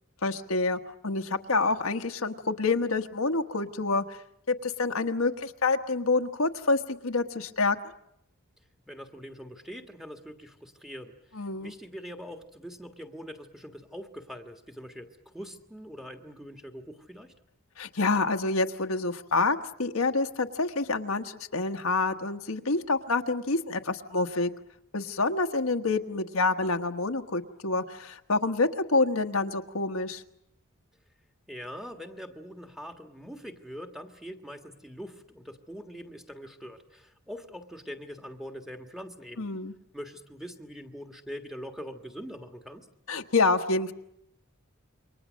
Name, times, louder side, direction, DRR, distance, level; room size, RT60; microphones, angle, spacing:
voice 1, 0.2-4.2 4.5-7.9 11.4-11.7 17.8-24.5 24.9-30.2 39.4-39.7 43.1-43.9, left 3 dB, 80° left, 5 dB, 1.3 m, -27 dB
voice 2, 8.9-17.3 31.5-39.5 39.9-42.9, equal, ahead, 5 dB, 1.6 m, -43 dB
28.5 x 23.5 x 6.4 m, 0.76 s
head